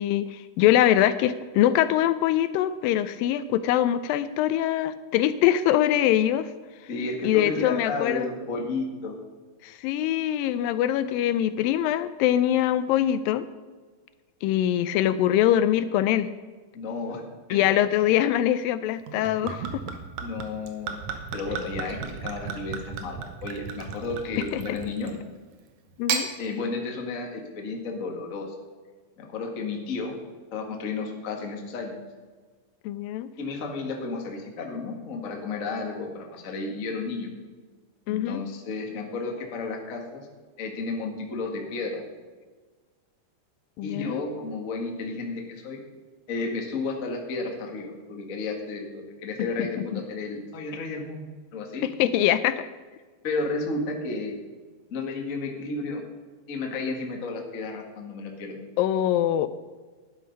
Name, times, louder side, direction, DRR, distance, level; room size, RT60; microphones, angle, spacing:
voice 1, 0.0-6.5 7.2-8.3 9.6-13.5 14.4-16.3 17.5-19.8 24.4-24.8 26.0-26.3 32.9-33.3 38.1-38.4 43.8-44.2 51.8-52.7 58.8-59.5, left 12 dB, 80° left, 13 dB, 2.2 m, -23 dB
voice 2, 6.9-9.2 16.7-17.2 17.5-17.6 20.2-21.0 21.3-25.1 26.4-28.5 29.2-30.2 30.5-32.0 33.4-37.3 38.1-40.3 40.6-42.0 43.8-45.8 46.3-51.3 51.5-51.8 53.2-54.4 54.9-56.0 56.5-58.6, left 3 dB, 40° left, 1 dB, 1.1 m, -32 dB
Gurgling / Chink clink / Liquid, 19.1-25.2 25.9-26.3, right 6 dB, 65° right, 2.1 m, -34 dB
12.0 x 10.0 x 5.3 m, 1.4 s
omnidirectional pair, 4.2 m